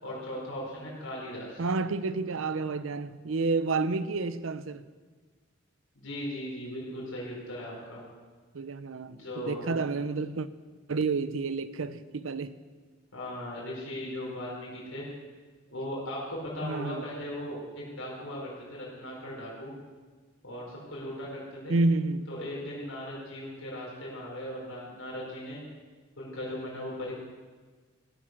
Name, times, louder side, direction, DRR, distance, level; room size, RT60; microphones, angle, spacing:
voice 1, 0.0-1.6 5.9-8.0 9.1-9.7 13.1-15.1 15.7-19.7 20.4-21.8 22.3-25.6 26.2-27.1, left 1 dB, 85° left, 4.6 m, -38 dB
voice 2, 1.6-4.8 8.5-10.5 10.9-12.6 16.6-17.1 21.7-22.2, right 3 dB, 85° right, 0.7 m, -30 dB
16.0 x 9.6 x 6.2 m
head